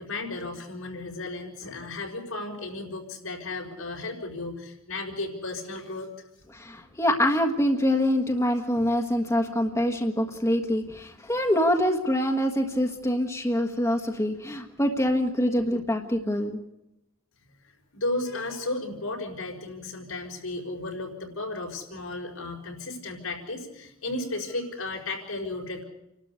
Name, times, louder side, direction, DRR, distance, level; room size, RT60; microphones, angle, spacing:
voice 1, 0.0-6.1 17.9-25.8, left 2 dB, 85° left, 1 dB, 5.5 m, -34 dB
voice 2, 6.5-16.6, equal, 15° left, 4 dB, 1.5 m, -25 dB
29.0 x 12.5 x 8.3 m, 0.90 s
head